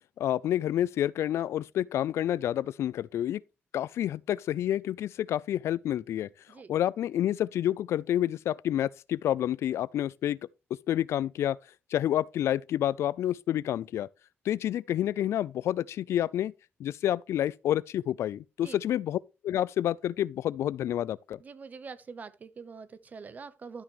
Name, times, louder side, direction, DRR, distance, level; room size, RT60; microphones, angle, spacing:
voice 1, 0.2-3.4 3.7-6.3 6.7-10.4 10.9-11.6 11.9-14.1 14.5-16.5 16.8-19.2 19.4-21.4, left 11 dB, 80° left, 0.3 m, -29 dB
voice 2, 21.4-23.8, right 5 dB, 35° right, 0.8 m, -44 dB
12.0 x 6.1 x 3.0 m
wide cardioid pair, 145°, 5 cm